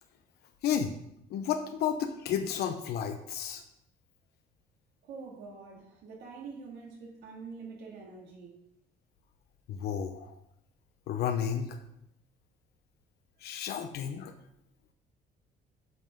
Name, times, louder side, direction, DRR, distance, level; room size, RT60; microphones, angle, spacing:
voice 1, 0.6-0.9 1.3-3.6 9.7-10.3 11.1-11.8 13.4-14.3, left 8 dB, 70° left, 6 dB, 0.7 m, -32 dB
voice 2, 5.0-8.6, right 4 dB, 80° right, -2 dB, 2.1 m, -45 dB
9.3 x 5.4 x 3.7 m, 0.76 s
cardioid pair, 110°, 17 cm